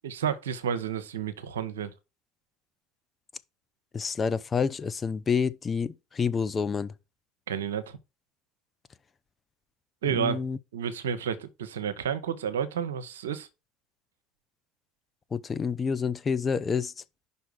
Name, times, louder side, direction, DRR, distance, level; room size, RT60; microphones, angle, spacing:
voice 1, 0.0-1.9 7.5-8.0 10.0-10.4 10.7-13.5, right 8 dB, 75° right, 0.7 m, -31 dB
voice 2, 3.9-6.9 10.1-10.6 15.3-16.9, left 6 dB, 25° left, 0.5 m, -28 dB
5.5 x 4.5 x 6.3 m
figure-of-eight pair, 65°, 0 cm